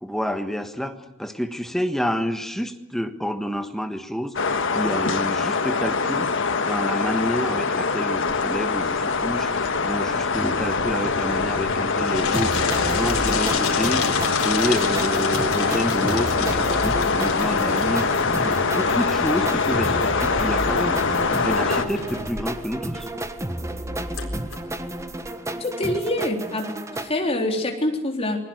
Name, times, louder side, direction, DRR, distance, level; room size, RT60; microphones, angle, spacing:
voice 1, 0.0-6.3 6.6-14.0 14.4-18.0 18.4-21.0 21.4-23.1, equal, ahead, 7 dB, 1.4 m, -29 dB
sound 1, 4.3-21.8, left 4 dB, 60° left, 1.6 m, -24 dB
sound 2, 8.3-25.3, left 4 dB, 85° left, 4.2 m, -30 dB
sound 3, 12.3-27.1, right 1 dB, 15° right, 1.4 m, -32 dB
voice 2, 25.6-28.4, left 1 dB, 30° left, 2 dB, 3.7 m, -26 dB
29.0 x 21.5 x 7.9 m, 0.90 s
head